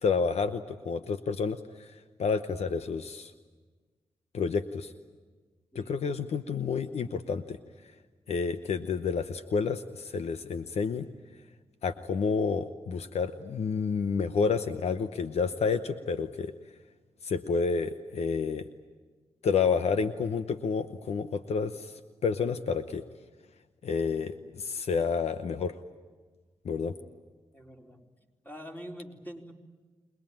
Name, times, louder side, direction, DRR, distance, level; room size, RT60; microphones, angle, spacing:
voice 1, 0.0-3.3 4.3-4.9 5.7-7.6 8.3-11.1 11.8-16.5 17.2-18.7 19.4-23.0 23.8-25.7 26.6-26.9, left 5 dB, 75° left, 10 dB, 0.9 m, -30 dB
voice 2, 27.5-28.1 28.4-29.5, equal, 15° left, 0 dB, 4.4 m, -45 dB
27.0 x 21.0 x 9.0 m, 1.4 s
cardioid pair, 60°, 11 cm